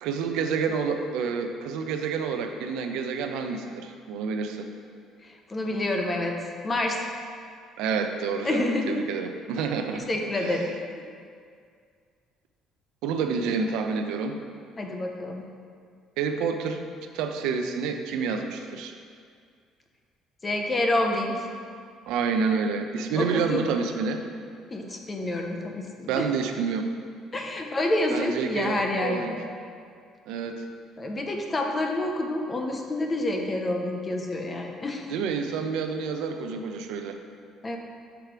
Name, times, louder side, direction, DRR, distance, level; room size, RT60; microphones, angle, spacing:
voice 1, 0.0-4.7 7.8-10.1 10.3-10.6 13.0-14.4 16.2-16.8 17.1-18.9 22.1-24.2 26.1-26.9 28.1-29.3 30.3-30.7 35.1-37.2, right 5 dB, 75° right, 6 dB, 0.5 m, -28 dB
voice 2, 5.2-6.4 6.6-7.0 8.4-9.0 9.6-10.7 14.8-15.5 20.4-21.5 23.1-23.6 24.7-26.3 27.3-29.4 31.0-35.1 37.6-37.8, left 1 dB, 15° left, 2 dB, 0.5 m, -28 dB
6.0 x 4.6 x 4.9 m, 2.2 s
cardioid pair, 180°, 0 cm